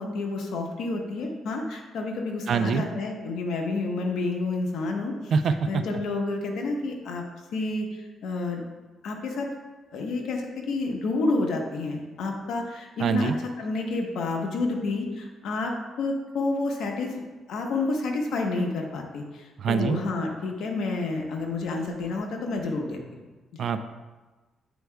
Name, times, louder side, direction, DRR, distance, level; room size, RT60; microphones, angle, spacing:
voice 1, 0.0-5.1 5.7-7.2 7.5-7.9 8.2-8.6 9.0-9.5 9.9-13.3 13.6-17.1 17.5-23.0 23.5-23.7, left 3 dB, 75° left, 1 dB, 1.0 m, -29 dB
voice 2, 2.5-2.8 5.3-5.8 13.0-13.4 19.6-20.0 23.6-23.8, right 6 dB, 60° right, 10 dB, 0.4 m, -24 dB
9.1 x 4.7 x 2.3 m, 1.2 s
cardioid pair, 90°, 0 cm